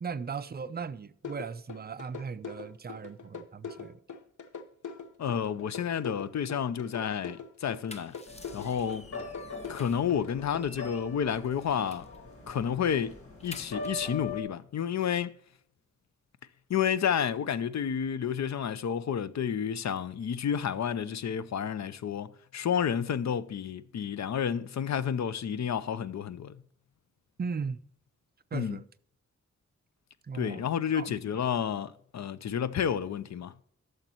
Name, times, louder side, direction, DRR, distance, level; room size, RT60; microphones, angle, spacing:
voice 1, 0.0-4.0 27.4-27.8 28.5-28.8 30.2-30.7 30.9-31.5, right 5 dB, 35° right, 0.4 m, -37 dB
sound 1, 1.2-10.6, left 6 dB, 85° left, 0.9 m, -42 dB
voice 2, 5.2-8.2 8.5-9.1 9.7-12.1 12.5-15.3 16.7-26.6 28.5-28.8 30.3-33.5, left 8 dB, 65° left, 0.6 m, -30 dB
sound 2, 7.8-10.1 10.5-12.2 12.6-12.7 13.0-14.1, left 2 dB, 20° left, 0.7 m, -51 dB
sound 3, 8.3-14.4, left 3 dB, 50° left, 1.9 m, -42 dB
13.0 x 6.5 x 3.0 m
wide cardioid pair, 140°, 29 cm